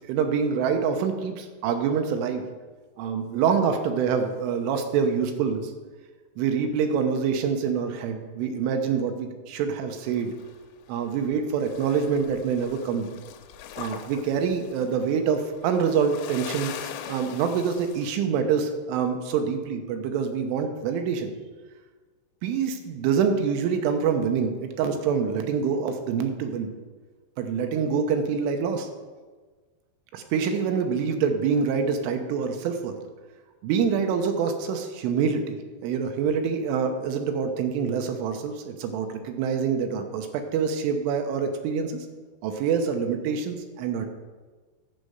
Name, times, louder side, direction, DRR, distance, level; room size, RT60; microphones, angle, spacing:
voice 1, 0.0-2.5 3.0-5.7 6.4-10.3 10.9-13.1 13.8-21.3 22.4-26.7 27.4-28.9 30.1-33.0 33.6-42.1 42.4-44.1, right 6 dB, 85° right, 6 dB, 3.3 m, -26 dB
sound 1, 10.0-11.4 11.6-18.1, left 10 dB, 90° left, 3.2 m, -41 dB
11.5 x 5.4 x 7.8 m, 1.4 s
omnidirectional pair, 5.6 m